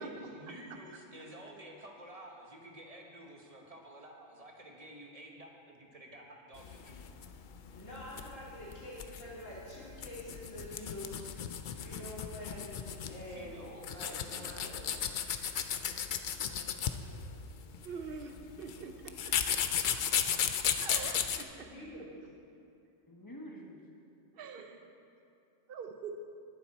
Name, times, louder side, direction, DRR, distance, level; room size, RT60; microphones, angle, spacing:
voice 1, 0.0-7.1 13.3-15.0, right 1 dB, 30° right, 0 dB, 1.3 m, -51 dB
sound 1, 6.6-21.4, left 8 dB, 60° left, 0.5 m, -35 dB
voice 2, 7.7-14.9 21.5-22.2, left 1 dB, 80° left, -8 dB, 3.5 m, -46 dB
voice 3, 16.5-18.3 23.1-23.8, equal, 15° left, 0 dB, 1.2 m, -52 dB
voice 4, 17.8-19.1 19.5-19.6 20.8-21.7 24.4-24.8 25.7-26.1, right 5 dB, 50° right, 5 dB, 1.0 m, -44 dB
19.5 x 7.2 x 4.2 m, 2.6 s
omnidirectional pair, 1.3 m